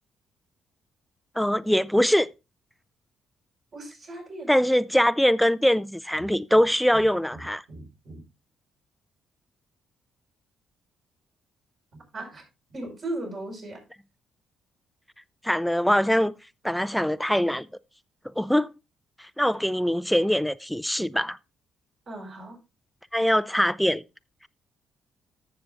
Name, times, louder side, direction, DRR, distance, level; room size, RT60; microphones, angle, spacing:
voice 1, 1.4-2.3 4.5-7.6 15.4-16.3 16.6-17.7 18.4-18.7 19.2-21.4 23.1-24.0, equal, 5° left, 0.5 m, -22 dB
voice 2, 3.7-4.5 6.2-6.3 6.9-7.0 7.3-8.2 12.1-12.4 12.7-13.8 22.1-22.6, right 2 dB, 50° right, 5.3 m, -37 dB
14.5 x 6.9 x 2.5 m
hypercardioid pair, 50°, 0 cm